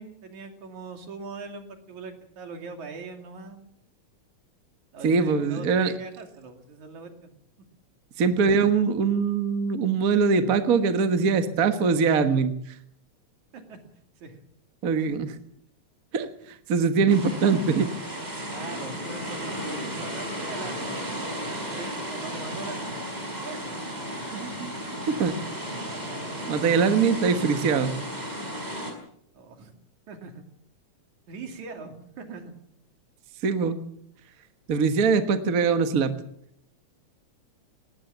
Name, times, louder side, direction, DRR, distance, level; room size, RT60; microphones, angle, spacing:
voice 1, 0.0-3.7 4.9-7.3 13.5-13.8 14.2-14.4 18.5-21.0 21.4-23.8 24.5-24.7 29.3-29.7 30.1-30.4 31.3-32.5, right 4 dB, 75° right, 5 dB, 4.0 m, -41 dB
voice 2, 5.0-5.9 8.2-12.5 14.8-15.3 16.1-16.3 16.7-17.9 24.3-24.7 25.1-25.3 26.5-27.9 33.4-33.8 34.7-36.1, right 5 dB, 40° right, 8 dB, 1.3 m, -22 dB
sound 1, 17.1-28.9, equal, 15° right, 4.5 m, -34 dB
19.0 x 18.5 x 7.4 m, 0.69 s
omnidirectional pair, 3.3 m